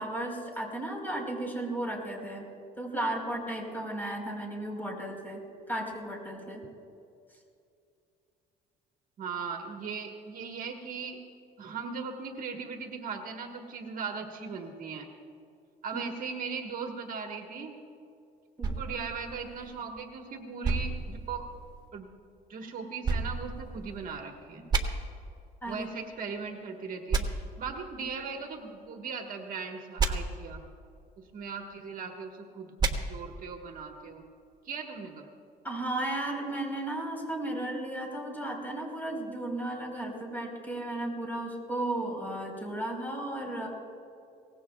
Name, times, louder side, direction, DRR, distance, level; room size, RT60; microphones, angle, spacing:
voice 1, 0.0-2.5 2.8-5.4 5.7-6.6 15.9-16.0 18.6-18.7 25.6-25.9 35.6-43.7, right 1 dB, 10° left, 1 dB, 4.2 m, -34 dB
voice 2, 9.2-11.2 11.6-15.1 15.8-17.7 18.8-21.5 21.9-22.1 22.5-24.7 25.7-30.6 31.2-32.7 33.0-34.2 34.6-35.3, right 5 dB, 55° right, 2 dB, 1.4 m, -38 dB
sound 1, 18.6-20.0 20.6-21.9 23.0-24.2 24.7-24.8 27.1-27.2 30.0-30.1 32.8-32.9, right 4 dB, 25° right, 1.4 m, -31 dB
23.5 x 18.5 x 2.3 m, 2.4 s
cardioid pair, 110°, 17 cm